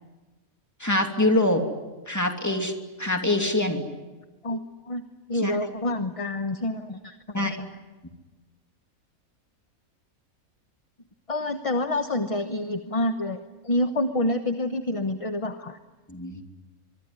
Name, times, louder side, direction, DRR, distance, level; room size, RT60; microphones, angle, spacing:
voice 1, 0.8-1.6 2.1-3.9 5.3-5.6 7.3-7.6 16.1-16.4, left 1 dB, 10° left, 4 dB, 2.7 m, -24 dB
voice 2, 5.3-7.7 11.3-15.8, left 1 dB, 25° left, 7 dB, 1.0 m, -28 dB
24.5 x 23.0 x 9.7 m, 1.2 s
omnidirectional pair, 1.5 m